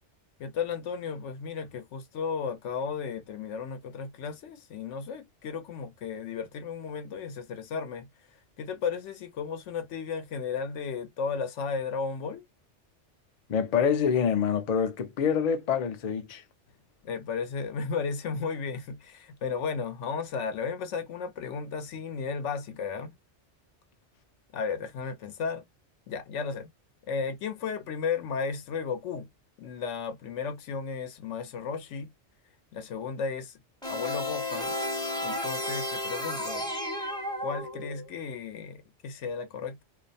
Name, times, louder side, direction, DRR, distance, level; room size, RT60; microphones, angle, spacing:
voice 1, 0.4-8.1 8.6-12.4 17.0-23.1 24.5-25.6 26.1-26.7 27.1-29.3 29.6-32.1 32.7-33.6 33.9-34.7 35.2-36.7 37.4-39.8, left 5 dB, 80° left, 1.0 m, -34 dB
voice 2, 13.5-16.4, left 7 dB, 55° left, 0.5 m, -26 dB
sound 1, 33.8-38.2, left 1 dB, 5° left, 0.6 m, -33 dB
2.5 x 2.0 x 2.6 m
omnidirectional pair, 1.2 m